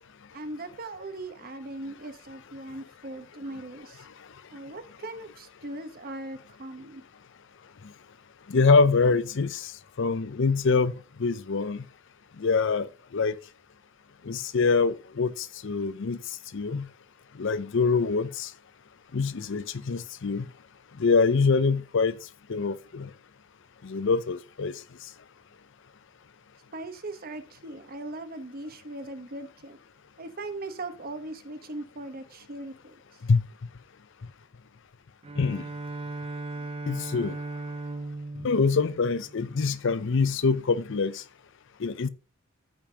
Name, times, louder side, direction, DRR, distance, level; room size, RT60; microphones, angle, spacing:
voice 1, 0.3-4.1 4.5-7.0 26.7-29.8 30.2-33.0, right 2 dB, 45° right, 1.0 m, -39 dB
voice 2, 8.5-9.7 10.0-10.9 11.2-11.8 12.4-13.3 14.3-16.2 16.5-16.9 17.4-18.5 19.1-20.5 21.0-22.2 22.5-23.1 23.8-24.7 33.3-33.4 35.4-35.6 36.9-37.4 38.4-41.2 41.8-42.1, left 4 dB, 65° left, 0.6 m, -24 dB
Bowed string instrument, 35.2-39.9, right 2 dB, 30° right, 0.5 m, -38 dB
14.0 x 5.3 x 2.8 m
head